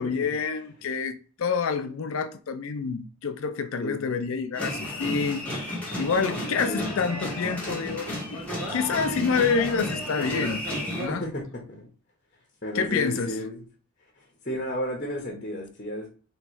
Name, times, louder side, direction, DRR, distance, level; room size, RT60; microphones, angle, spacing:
voice 1, 0.0-5.6 5.9-8.4 8.7-10.6 11.0-11.2 12.7-13.3, left 5 dB, 65° left, 0.4 m, -28 dB
voice 2, 3.8-4.3 6.6-6.9 11.1-11.9 12.6-13.6 14.2-16.1, left 1 dB, 35° left, 1.1 m, -33 dB
sound 1, 4.5-11.1, equal, 5° left, 1.3 m, -32 dB
3.2 x 3.1 x 4.6 m
head